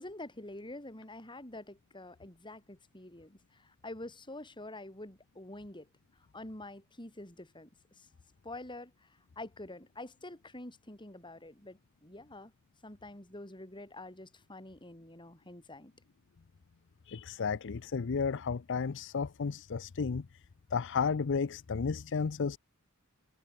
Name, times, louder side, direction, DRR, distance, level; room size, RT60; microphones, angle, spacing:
voice 1, 0.0-5.9 6.3-8.1 8.4-12.5 12.8-15.9, left 2 dB, 20° left, 4.5 m, -47 dB
voice 2, 17.1-20.3 20.7-22.6, left 5 dB, 55° left, 0.5 m, -33 dB
head